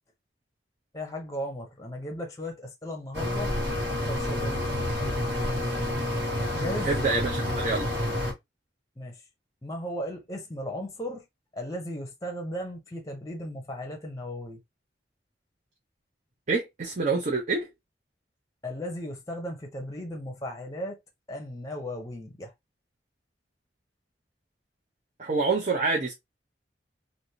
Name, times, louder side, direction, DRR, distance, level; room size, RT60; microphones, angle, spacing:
voice 1, 0.9-3.5 4.1-4.7 6.6-6.9 9.0-9.1 9.6-11.2 11.5-14.6 18.6-21.0 21.3-22.5, equal, 20° left, 0.7 m, -36 dB
sound 1, 3.1-8.3, left 1 dB, 65° right, 1.9 m, -29 dB
voice 2, 6.8-7.9 16.5-17.7 25.2-26.1, right 3 dB, 45° right, 0.8 m, -27 dB
3.3 x 2.6 x 2.7 m
head